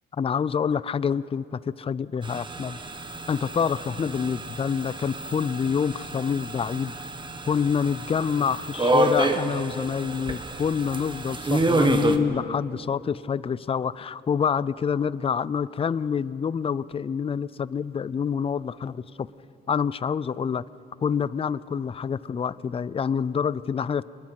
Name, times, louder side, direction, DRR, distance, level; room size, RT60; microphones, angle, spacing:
voice 1, 0.1-2.8 3.3-6.9 7.5-19.3 19.7-20.6 21.0-24.0, left 7 dB, 30° left, 18 dB, 0.5 m, -27 dB
sound 1, 2.2-12.2, right 2 dB, 25° right, 1.6 m, -28 dB
26.0 x 21.0 x 6.5 m, 2.6 s
cardioid pair, 90°, 20 cm